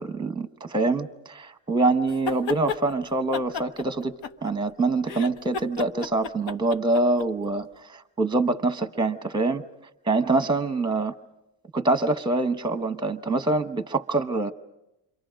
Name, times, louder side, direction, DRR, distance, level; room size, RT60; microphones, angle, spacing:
voice 1, 0.0-4.1 4.4-9.6 10.1-11.1 11.7-14.5, right 2 dB, 10° right, 0.9 m, -25 dB
sound 1, 2.1-2.8 3.3-4.7 5.0-7.3, left 4 dB, 80° left, 1.4 m, -32 dB
29.0 x 26.0 x 5.1 m
cardioid pair, 160°, 44 cm